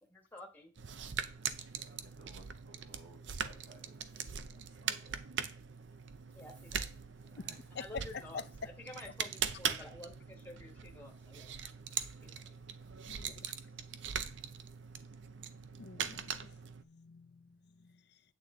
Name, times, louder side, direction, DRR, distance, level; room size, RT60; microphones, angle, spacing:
voice 1, 0.1-0.7 6.3-6.8 7.8-8.4 8.8-11.7 12.2-12.6 13.2-13.3, left 1 dB, 10° left, 1.4 m, -51 dB
sound 1, 0.8-16.8, right 7 dB, 65° right, 0.6 m, -41 dB
voice 2, 1.3-5.5 5.8-6.1 6.3-7.8 11.0-11.2 12.0-13.1 14.8-15.1, right 2 dB, 80° right, 5.4 m, -62 dB
voice 3, 7.8-8.5 9.8-9.9 13.1-13.5 15.7-18.2, left 5 dB, 55° left, 0.6 m, -47 dB
8.6 x 8.5 x 3.7 m
head